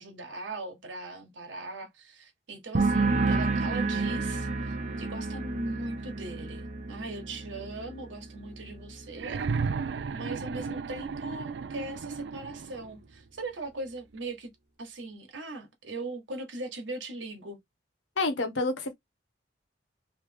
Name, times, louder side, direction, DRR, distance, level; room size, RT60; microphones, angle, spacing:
voice 1, 0.0-9.4 10.1-14.5 14.8-17.6, right 2 dB, 85° right, 1.3 m, -39 dB
sound 1, 2.7-10.2 10.5-11.0, right 3 dB, 40° right, 0.7 m, -31 dB
sound 2, 9.1-13.0 14.2-14.3, right 5 dB, 65° right, 0.4 m, -34 dB
voice 2, 18.2-18.9, left 3 dB, 90° left, 1.1 m, -28 dB
3.2 x 2.9 x 3.4 m
head